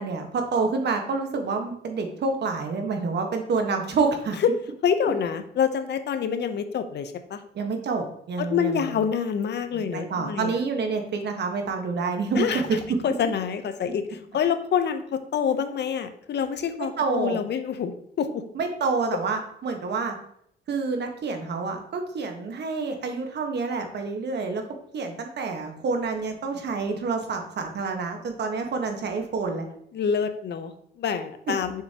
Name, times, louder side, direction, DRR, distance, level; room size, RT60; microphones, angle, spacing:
voice 1, 0.0-4.4 7.5-9.0 9.7-12.8 17.0-17.4 18.5-20.2 20.7-24.6 24.9-29.6, right 4 dB, 60° right, 4 dB, 1.4 m, -28 dB
voice 2, 4.8-7.4 8.4-10.6 12.4-12.6 13.0-18.4 29.9-31.8, left 7 dB, 60° left, 9 dB, 0.8 m, -26 dB
6.7 x 6.6 x 2.9 m, 0.70 s
cardioid pair, 90°, 20 cm